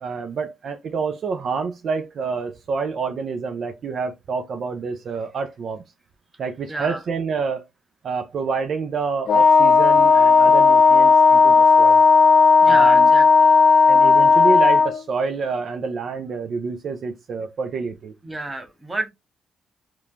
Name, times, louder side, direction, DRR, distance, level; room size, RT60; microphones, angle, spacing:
voice 1, 0.0-5.8 6.4-7.6 8.0-12.0 12.7-13.1 13.9-18.1, right 5 dB, 55° right, 0.4 m, -27 dB
voice 2, 6.7-7.0 12.6-13.2 18.2-19.1, right 2 dB, 20° right, 0.8 m, -29 dB
Wind instrument woodwind instrument, 9.3-15.0, left 4 dB, 50° left, 0.3 m, -13 dB
3.0 x 2.2 x 2.4 m
cardioid pair, 90°, 0 cm